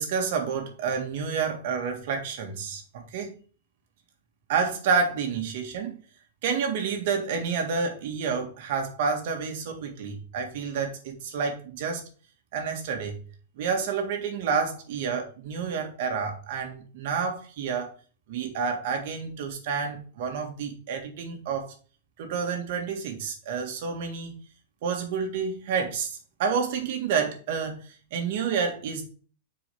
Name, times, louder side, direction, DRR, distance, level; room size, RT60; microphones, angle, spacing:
voice 1, 0.0-3.3 4.5-6.0 6.4-12.0 12.5-13.2 13.6-17.9 18.3-21.7 22.2-24.3 24.8-29.0, right 5 dB, 45° right, 1.7 m, -29 dB
7.1 x 4.7 x 3.6 m
supercardioid pair, 170°, 0 cm